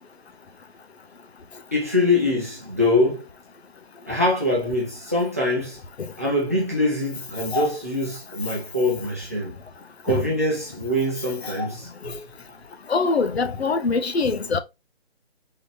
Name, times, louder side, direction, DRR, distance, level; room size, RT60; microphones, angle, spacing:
voice 1, 1.7-3.2 4.1-5.8 6.2-9.6 10.0-12.1, left 1 dB, 15° right, 0.7 m, -24 dB
voice 2, 12.9-14.6, left 4 dB, 75° left, 0.9 m, -23 dB
3.8 x 2.9 x 3.3 m
hypercardioid pair, 180°, 32 cm